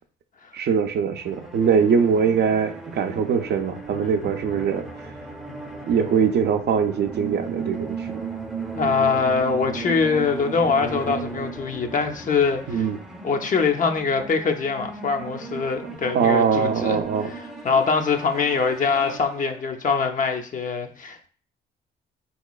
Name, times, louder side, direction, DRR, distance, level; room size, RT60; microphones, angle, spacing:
voice 1, 0.5-4.9 5.9-8.2 12.7-13.0 16.1-17.3, right 6 dB, 55° right, 0.5 m, -22 dB
sound 1, 1.1-19.9, right 4 dB, 5° right, 0.6 m, -36 dB
voice 2, 8.7-12.9 13.2-17.0 17.2-17.4 17.6-21.3, left 5 dB, 40° left, 0.5 m, -23 dB
3.7 x 2.9 x 2.3 m
cardioid pair, 90°, 20 cm